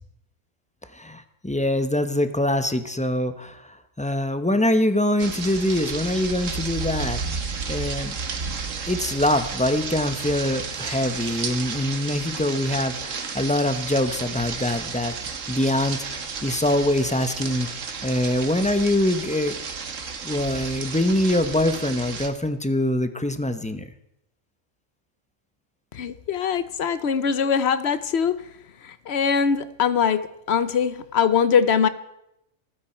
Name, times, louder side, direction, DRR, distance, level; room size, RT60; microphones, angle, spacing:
voice 1, 0.9-7.2 7.7-8.1 8.9-17.7 18.0-19.6 20.2-23.9, left 1 dB, 5° left, 9 dB, 0.8 m, -24 dB
sound 1, 5.2-22.3, right 5 dB, 75° right, 1.6 m, -32 dB
voice 2, 25.9-28.4 28.8-31.9, left 7 dB, 60° left, 14 dB, 1.0 m, -22 dB
29.0 x 9.8 x 4.4 m, 0.83 s
omnidirectional pair, 1.3 m